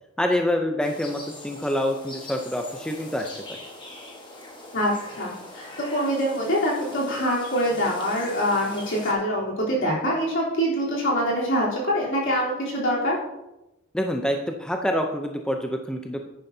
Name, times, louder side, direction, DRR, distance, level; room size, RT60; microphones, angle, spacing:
voice 1, 0.2-3.6 13.9-16.2, left 1 dB, 5° left, 3 dB, 0.5 m, -26 dB
sound 1, 0.8-9.1, left 2 dB, 25° left, 1.4 m, -41 dB
voice 2, 4.7-13.2, equal, 65° left, -5 dB, 3.4 m, -25 dB
10.0 x 10.0 x 2.7 m, 0.96 s
head